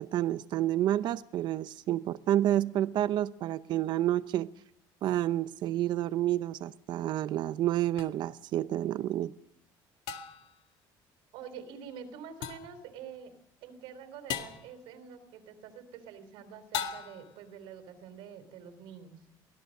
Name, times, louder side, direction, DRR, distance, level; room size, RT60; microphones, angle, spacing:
voice 1, 0.0-4.5 5.0-9.3, right 13 dB, 60° right, 14 dB, 0.7 m, -29 dB
sound 1, 8.0-8.1 10.1-10.6 12.4-12.8 14.3-14.7 16.7-17.4, left 9 dB, 80° left, 2.0 m, -37 dB
voice 2, 11.3-13.3 13.6-19.2, right 7 dB, 85° right, 9 dB, 3.7 m, -47 dB
24.0 x 17.5 x 6.5 m, 0.76 s
cardioid pair, 135°, 9 cm